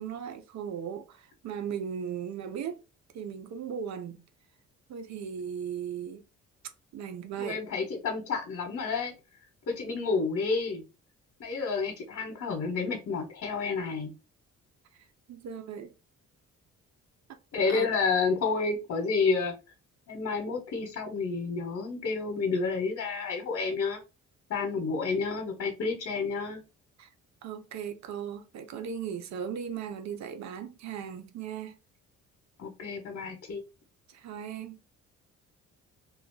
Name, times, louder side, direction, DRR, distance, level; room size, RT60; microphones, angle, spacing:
voice 1, 0.0-2.8 3.1-4.2 4.9-6.2 6.9-7.6 15.3-15.9 17.3-17.4 17.7-17.9 27.0-27.1 27.4-31.8 34.1-34.8, right 8 dB, 65° right, 0.7 m, -37 dB
voice 2, 7.4-9.1 9.7-10.8 11.4-14.1 17.5-19.5 20.1-24.0 24.5-26.6 32.6-33.6, left 4 dB, 60° left, 1.2 m, -30 dB
3.0 x 2.3 x 3.7 m
cardioid pair, 90°, 30 cm